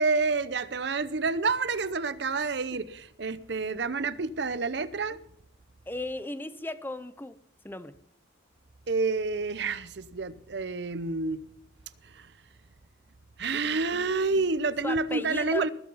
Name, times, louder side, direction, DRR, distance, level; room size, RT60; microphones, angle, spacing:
voice 1, 0.0-5.2 8.9-11.4 12.0-12.3 13.4-15.7, right 4 dB, 65° right, 0.7 m, -29 dB
voice 2, 5.9-7.4 7.6-7.9 13.6-14.1 14.8-15.7, left 2 dB, 10° left, 0.6 m, -36 dB
19.5 x 7.9 x 5.6 m
head